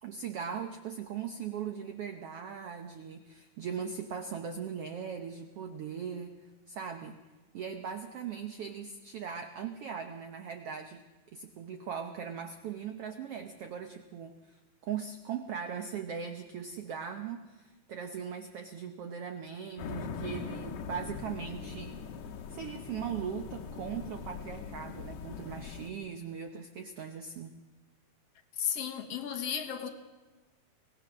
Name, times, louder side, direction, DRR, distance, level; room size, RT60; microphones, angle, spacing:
voice 1, 0.0-6.3 6.7-7.2 7.5-11.0 11.3-22.0 22.5-27.5, right 7 dB, 80° right, 1.3 m, -39 dB
sound 1, 19.8-25.9, left 6 dB, 75° left, 2.7 m, -41 dB
voice 2, 28.6-29.9, left 8 dB, 60° left, 1.8 m, -34 dB
24.5 x 17.5 x 6.2 m
omnidirectional pair, 4.0 m